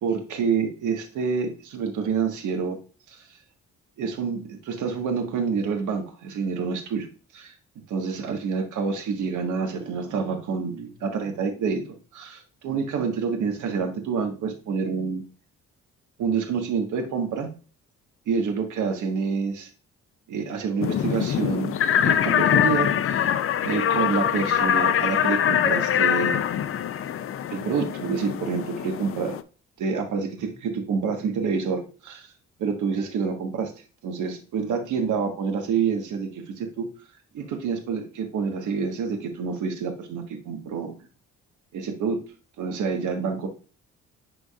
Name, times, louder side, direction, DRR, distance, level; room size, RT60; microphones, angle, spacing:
voice 1, 0.0-2.8 3.1-3.2 4.0-7.1 7.3-7.5 7.9-15.2 16.2-17.5 18.3-19.7 20.3-23.3 23.6-26.4 27.5-29.4 29.8-32.3 32.6-33.7 34.0-36.9 37.3-41.0 41.7-42.2 42.6-43.5, right 5 dB, 80° right, 5 dB, 1.5 m, -27 dB
sound 1, 20.8-29.4, left 9 dB, 45° left, 0.5 m, -23 dB
10.0 x 3.9 x 2.4 m, 0.37 s
cardioid pair, 90°, 30 cm